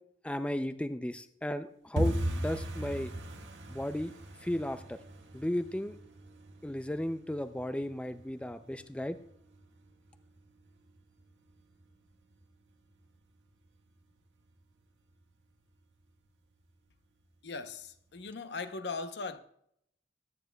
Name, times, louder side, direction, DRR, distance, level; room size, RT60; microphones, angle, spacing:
voice 1, 0.2-3.1 3.7-4.1 4.4-5.0 5.3-6.0 6.6-9.2, left 1 dB, 5° left, 0.4 m, -34 dB
sound 1, 2.0-12.7 12.9-13.6 13.9-14.2 14.4-14.8 15.1-15.2 15.7-16.3 16.6-16.7 17.2-17.3, equal, 90° right, 1.6 m, -39 dB
voice 2, 17.4-19.4, left 4 dB, 65° left, 0.8 m, -39 dB
21.5 x 9.5 x 2.3 m
head